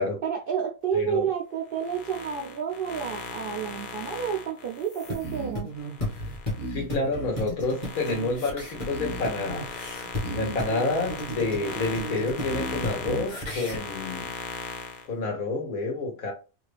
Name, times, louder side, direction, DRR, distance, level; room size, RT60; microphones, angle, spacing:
voice 1, 0.2-5.7, right 8 dB, 65° right, 0.5 m, -30 dB
voice 2, 0.9-1.3 6.7-9.7 10.3-14.3 15.1-16.3, left 3 dB, 85° left, 1.6 m, -29 dB
sound 1, 1.7-6.8 7.2-15.1, left 4 dB, 50° left, 0.6 m, -39 dB
sound 2, 5.1-13.8, equal, 25° left, 0.9 m, -34 dB
3.1 x 2.4 x 3.3 m
omnidirectional pair, 1.4 m